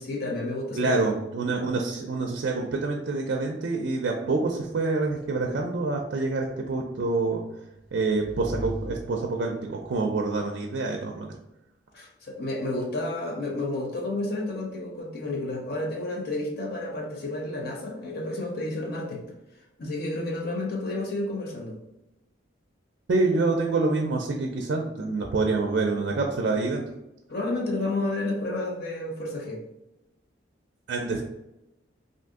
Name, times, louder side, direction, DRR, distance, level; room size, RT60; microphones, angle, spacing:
voice 1, 0.0-1.1 11.9-19.2 19.8-21.8 27.3-29.6, left 2 dB, 55° left, -1 dB, 0.6 m, -31 dB
voice 2, 0.7-7.4 7.9-11.3 23.1-26.8 30.9-31.2, right 3 dB, 60° right, 1 dB, 0.4 m, -26 dB
sound 1, 7.4-9.8, equal, 75° left, 1.2 m, -39 dB
2.6 x 2.6 x 3.5 m, 0.92 s
head